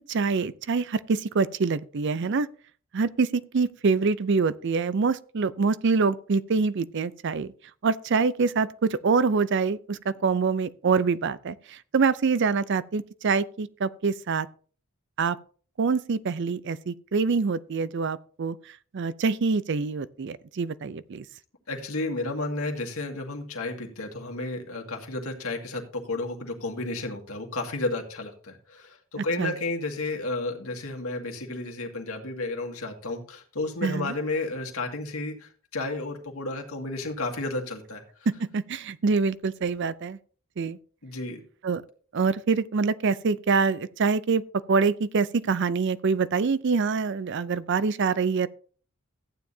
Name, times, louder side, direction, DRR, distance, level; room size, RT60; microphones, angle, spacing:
voice 1, 0.0-2.5 2.9-7.5 7.8-11.6 11.9-14.5 15.2-15.4 15.8-18.6 18.9-21.2 29.4-29.5 33.8-34.1 38.3-40.2 40.6-40.8 41.6-41.8 42.1-44.4 44.7-48.5, right 4 dB, 55° right, 0.5 m, -25 dB
voice 2, 21.7-38.0 41.0-41.4, left 2 dB, 80° left, 2.1 m, -32 dB
14.5 x 9.3 x 2.8 m
head